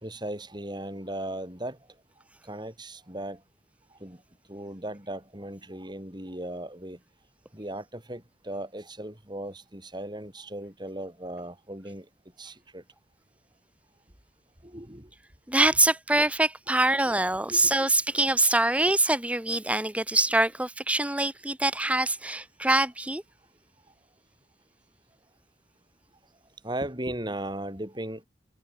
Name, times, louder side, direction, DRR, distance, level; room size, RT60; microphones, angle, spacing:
voice 1, 0.0-1.8 2.4-3.4 4.0-4.2 4.5-7.0 7.5-12.1 12.4-12.8 14.6-15.1 15.6-15.7 17.1-17.2 17.5-17.8 26.6-28.2, right 1 dB, 25° right, 4.8 m, -37 dB
voice 2, 15.5-23.2, right 2 dB, 5° right, 1.1 m, -24 dB
head